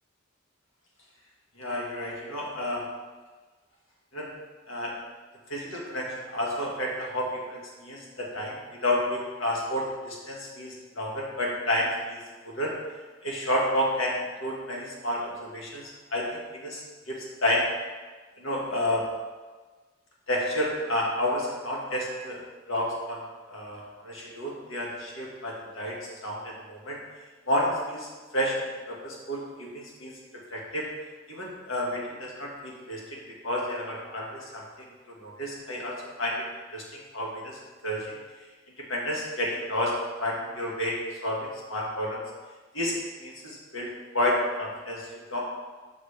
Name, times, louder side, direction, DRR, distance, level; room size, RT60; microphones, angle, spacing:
voice 1, 1.6-2.8 4.1-4.3 4.7-4.9 5.5-12.2 12.4-12.7 13.2-16.8 17.1-17.6 18.4-19.0 20.3-22.4 22.7-23.2 23.5-27.0 27.5-28.1 28.3-30.2 30.5-30.9 31.3-33.0 33.4-34.6 35.1-36.4 36.7-36.8 37.1-38.2 38.9-39.9 40.2-42.2 42.7-45.4, left 1 dB, 75° left, -3 dB, 1.7 m, -30 dB
6.6 x 6.6 x 3.3 m, 1.3 s
head